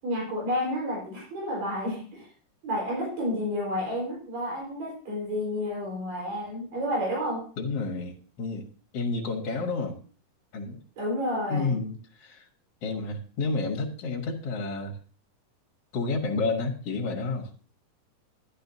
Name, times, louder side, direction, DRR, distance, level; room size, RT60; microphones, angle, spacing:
voice 1, 0.0-2.3 2.6-7.5 11.0-11.8, left 1 dB, 90° right, -3 dB, 6.3 m, -30 dB
voice 2, 7.6-8.7 8.9-10.0 10.5-10.8 11.5-12.4 12.8-14.9 15.9-17.5, left 3 dB, 55° left, 0 dB, 2.3 m, -30 dB
12.5 x 11.5 x 2.8 m, 0.41 s
omnidirectional pair, 3.8 m